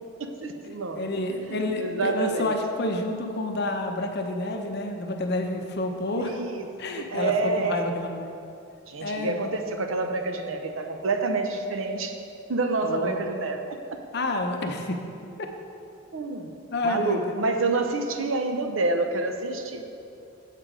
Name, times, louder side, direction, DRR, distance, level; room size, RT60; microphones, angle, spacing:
voice 1, 0.2-1.1 1.5-2.5 6.2-6.6 7.0-7.9 8.9-12.2 12.5-13.6 16.1-16.5 16.8-19.8, right 3 dB, 80° right, 5 dB, 0.7 m, -28 dB
voice 2, 0.9-6.4 6.8-8.3 9.0-9.5 12.8-13.2 14.1-15.0 15.4-15.5 16.7-17.2 18.2-18.3, left 2 dB, 55° left, 4 dB, 0.7 m, -29 dB
7.5 x 6.5 x 5.0 m, 2.6 s
head